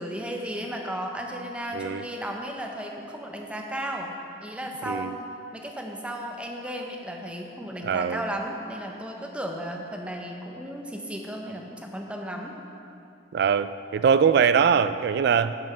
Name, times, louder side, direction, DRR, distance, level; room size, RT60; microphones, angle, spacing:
voice 1, 0.0-4.1 4.4-5.2 5.5-12.6, equal, 5° right, 1 dB, 0.8 m, -34 dB
voice 2, 1.7-2.0 4.9-5.2 7.8-8.2 13.3-15.5, right 6 dB, 60° right, 13 dB, 0.3 m, -22 dB
10.5 x 5.5 x 5.5 m, 2.7 s
head